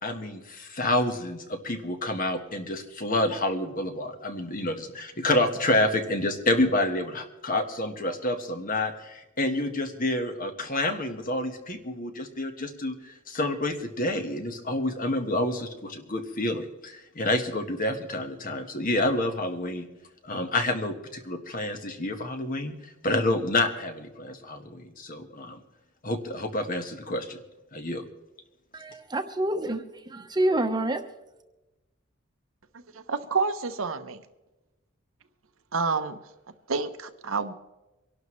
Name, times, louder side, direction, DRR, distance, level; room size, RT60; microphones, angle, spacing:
voice 1, 0.0-19.9 20.2-25.6 26.0-27.4 27.7-28.0, left 1 dB, 40° left, 1.5 m, -28 dB
voice 2, 28.7-31.0, right 1 dB, 20° right, 1.1 m, -27 dB
voice 3, 32.9-34.2 35.7-36.2 36.7-37.5, right 4 dB, 75° right, 1.0 m, -28 dB
24.5 x 12.0 x 3.2 m
head